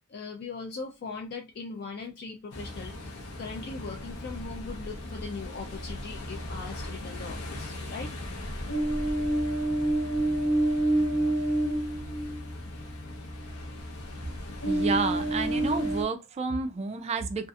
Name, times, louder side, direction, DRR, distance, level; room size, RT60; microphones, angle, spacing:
voice 1, 0.1-8.2 10.1-10.2, left 4 dB, 45° left, 0.4 m, -40 dB
Ocean, 2.5-16.0, right 1 dB, 90° left, 0.8 m, -30 dB
voice 2, 14.6-17.5, right 4 dB, 30° right, 0.3 m, -30 dB
2.7 x 2.4 x 2.3 m
head